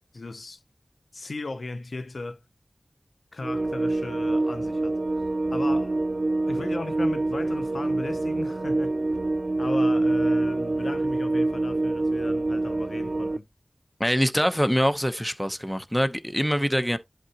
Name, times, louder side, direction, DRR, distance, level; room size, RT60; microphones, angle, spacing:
voice 1, 0.1-0.6 1.1-2.4 3.3-5.0 5.5-6.0 6.5-8.9 9.6-13.5, left 3 dB, 75° left, 0.7 m, -36 dB
sound 1, 3.4-13.4, right 2 dB, 60° right, 0.4 m, -26 dB
voice 2, 14.0-17.0, equal, 5° left, 0.8 m, -24 dB
11.0 x 3.7 x 2.9 m
wide cardioid pair, 70°, 0 cm